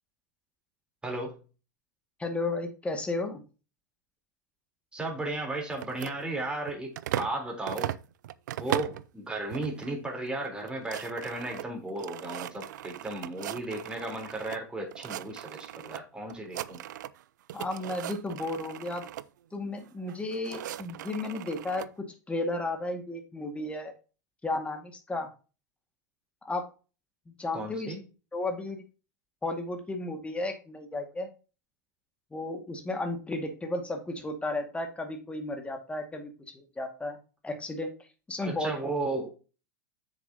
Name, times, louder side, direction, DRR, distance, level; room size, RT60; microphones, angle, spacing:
voice 1, 1.0-1.4 4.9-7.9 8.6-16.8 27.5-28.0 38.4-39.3, right 2 dB, 10° right, 0 dB, 3.7 m, -35 dB
voice 2, 2.2-3.4 17.5-19.1 19.5-23.9 24.4-25.3 26.4-26.6 27.3-27.9 28.3-28.8 29.4-31.3 32.3-37.2 37.4-37.9 38.3-38.7, left 2 dB, 10° left, 4 dB, 2.0 m, -33 dB
sound 1, 5.7-7.4 7.7-9.1 9.5-9.9 10.3-10.4 10.6-14.6 14.9-16.0 16.3-17.2 17.5-19.3 20.1-21.9, right 13 dB, 75° right, 0.4 m, -38 dB
7.7 x 6.7 x 2.9 m, 0.33 s
hypercardioid pair, 100°, 10 cm